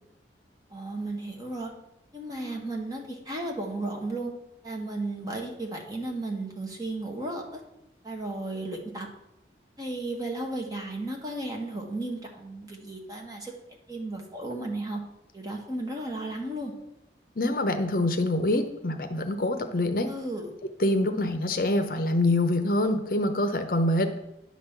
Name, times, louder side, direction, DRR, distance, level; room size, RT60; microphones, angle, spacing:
voice 1, 0.7-1.7 2.1-4.3 4.6-7.6 8.0-9.1 9.8-13.5 13.9-15.0 15.3-16.7 20.0-20.5, right 2 dB, 20° right, 1 dB, 1.5 m, -34 dB
voice 2, 17.4-20.1 20.8-24.1, left 1 dB, 55° left, 8 dB, 0.7 m, -25 dB
10.5 x 4.2 x 7.1 m, 0.87 s
head